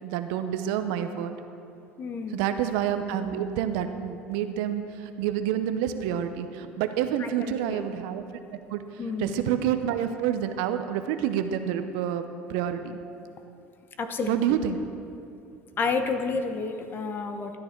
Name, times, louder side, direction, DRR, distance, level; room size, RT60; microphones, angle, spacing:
voice 1, 0.0-1.4 2.3-8.2 8.7-8.8 9.2-12.2 12.5-12.8 14.3-14.8, right 10 dB, 75° right, 8 dB, 0.7 m, -28 dB
voice 2, 2.0-2.5 7.2-7.8 9.0-9.4 14.0-14.4 15.8-17.6, left 4 dB, 40° left, 7 dB, 1.0 m, -30 dB
12.5 x 9.6 x 4.5 m, 2.6 s
supercardioid pair, 90°, 5 cm